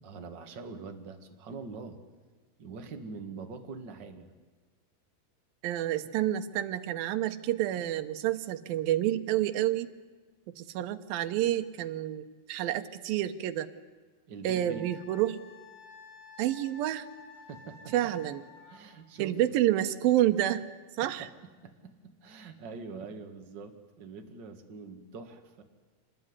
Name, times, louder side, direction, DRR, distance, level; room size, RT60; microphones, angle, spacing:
voice 1, 0.0-2.0 2.6-4.3 14.3-14.8 17.5-17.9 18.7-19.4 21.2-21.3 21.6-25.6, right 4 dB, 35° right, 5 dB, 2.2 m, -44 dB
voice 2, 5.6-9.9 10.6-13.7 14.4-15.4 16.4-17.1 17.9-18.4 19.2-20.6 20.9-21.3, right 13 dB, 85° right, 8 dB, 2.7 m, -29 dB
Wind instrument woodwind instrument, 14.6-18.9, left 5 dB, 75° left, 5.2 m, -51 dB
26.5 x 19.5 x 9.7 m, 1.4 s
omnidirectional pair, 4.0 m